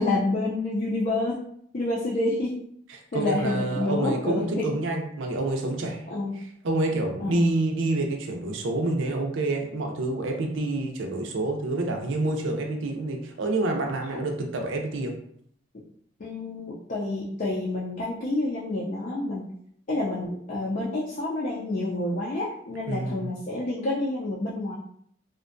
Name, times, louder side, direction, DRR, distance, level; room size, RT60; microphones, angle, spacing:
voice 1, 0.0-1.4 1.7-2.5 3.1-4.6 6.1-6.4 7.2-7.5 16.2-19.5 19.9-24.8, left 2 dB, 45° left, -5 dB, 0.4 m, -28 dB
voice 2, 3.1-6.0 6.4-15.1 22.9-23.3, right 2 dB, 85° right, 2 dB, 0.5 m, -28 dB
2.6 x 2.1 x 2.5 m, 0.68 s
head